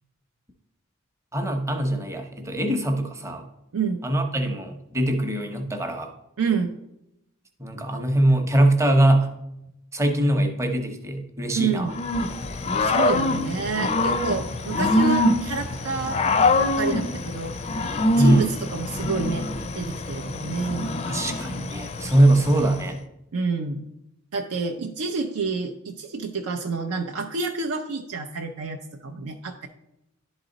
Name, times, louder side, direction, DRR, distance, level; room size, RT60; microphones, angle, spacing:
voice 1, 1.3-3.4 4.0-6.1 7.6-9.3 9.9-11.9 18.1-18.5 21.1-23.0, right 1 dB, 15° right, 4 dB, 0.8 m, -22 dB
voice 2, 6.4-6.7 11.5-11.9 12.8-17.5 18.2-19.5 19.7-21.0 23.3-23.9 24.3-29.7, right 4 dB, 75° right, 3 dB, 0.6 m, -28 dB
Growling / Cricket, 11.9-22.9, left 2 dB, 30° left, 0.4 m, -25 dB
11.0 x 4.0 x 3.9 m, 0.84 s
head